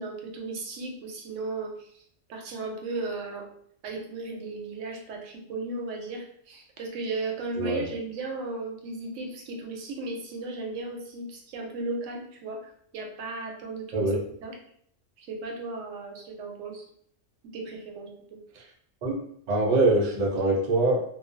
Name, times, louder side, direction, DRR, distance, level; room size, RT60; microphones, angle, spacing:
voice 1, 0.0-2.0 2.3-3.5 3.8-14.1 14.4-14.5 15.2-16.8 17.5-18.1, right 3 dB, 80° right, 2 dB, 0.9 m, -35 dB
voice 2, 19.0-21.0, right 2 dB, 50° right, -2 dB, 0.5 m, -24 dB
2.3 x 2.1 x 2.4 m, 0.66 s
omnidirectional pair, 1.3 m